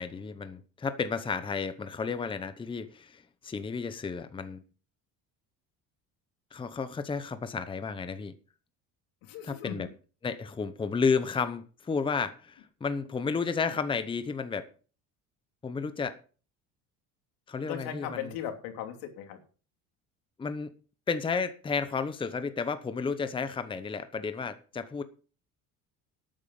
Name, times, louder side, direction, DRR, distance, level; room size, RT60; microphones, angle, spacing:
voice 1, 0.0-4.6 6.5-8.3 9.4-9.9 10.2-14.7 15.6-16.2 17.5-18.3 20.4-20.7 21.1-25.0, left 5 dB, 15° left, 0.8 m, -32 dB
voice 2, 9.2-9.9 17.6-19.4, left 9 dB, 85° left, 3.0 m, -38 dB
12.0 x 9.0 x 5.4 m
cardioid pair, 145°, 34 cm